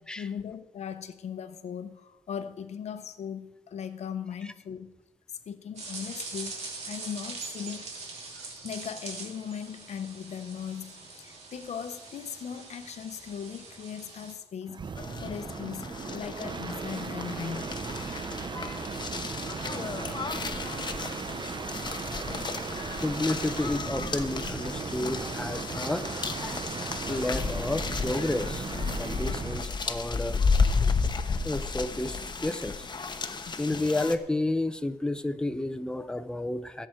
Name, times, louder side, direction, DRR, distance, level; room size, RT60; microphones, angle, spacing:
voice 1, 0.0-4.9 5.5-7.9 8.6-14.9 15.2-17.8 33.5-33.6, left 8 dB, 85° left, 10 dB, 0.9 m, -38 dB
sound 1, 5.8-14.3, right 3 dB, 85° right, 3.2 m, -42 dB
sound 2, 14.7-29.7 31.5-32.0, right 5 dB, 45° right, 0.7 m, -37 dB
sound 3, 14.9-34.2, left 4 dB, 40° left, 1.0 m, -33 dB
voice 2, 22.1-28.7 29.0-30.4 31.4-32.9 33.2-36.9, left 2 dB, 5° left, 9 dB, 0.8 m, -32 dB
18.0 x 7.9 x 4.6 m, 0.95 s
cardioid pair, 85°, 11 cm